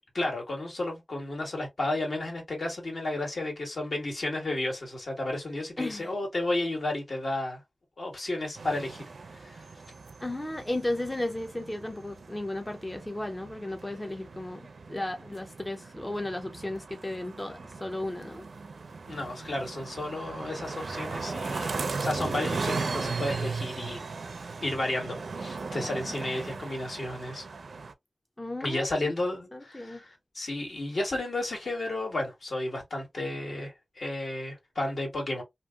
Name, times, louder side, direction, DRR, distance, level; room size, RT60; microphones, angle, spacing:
voice 1, 0.1-7.6 8.0-9.0 9.3-9.7 19.1-24.0 24.6-27.4 28.6-35.4, left 2 dB, 65° left, 1.5 m, -32 dB
voice 2, 5.8-6.1 10.2-18.4 28.4-29.1 29.5-30.0, left 1 dB, 20° left, 0.4 m, -34 dB
sound 1, 8.5-27.9, right 4 dB, 75° right, 0.4 m, -37 dB
2.8 x 2.7 x 2.3 m
wide cardioid pair, 80°, 0 cm